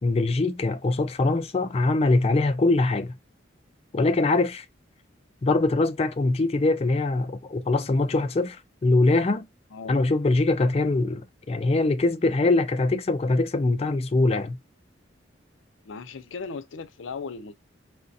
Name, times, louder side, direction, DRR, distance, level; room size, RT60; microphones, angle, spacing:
voice 1, 0.0-3.1 3.9-4.6 5.4-9.5 9.9-14.6, left 2 dB, 35° left, 0.4 m, -23 dB
voice 2, 15.8-17.5, left 4 dB, 90° left, 0.5 m, -37 dB
4.7 x 2.2 x 2.6 m
head